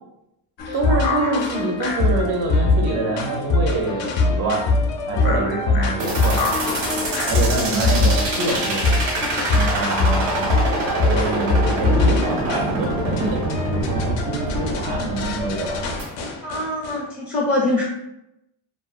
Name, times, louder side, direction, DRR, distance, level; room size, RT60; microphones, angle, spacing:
sound 1, 0.6-17.0, left 3 dB, 65° left, 0.5 m, -23 dB
voice 1, 0.7-4.7 5.1-6.5 7.3-8.8 9.5-15.9, right 3 dB, 65° right, 0 dB, 0.6 m, -26 dB
sound 2, 6.0-16.0, right 2 dB, 85° right, 1.1 m, -25 dB
voice 2, 16.4-17.8, left 2 dB, 20° left, -6 dB, 0.5 m, -23 dB
2.4 x 2.3 x 2.3 m, 0.83 s
cardioid pair, 125°, 49 cm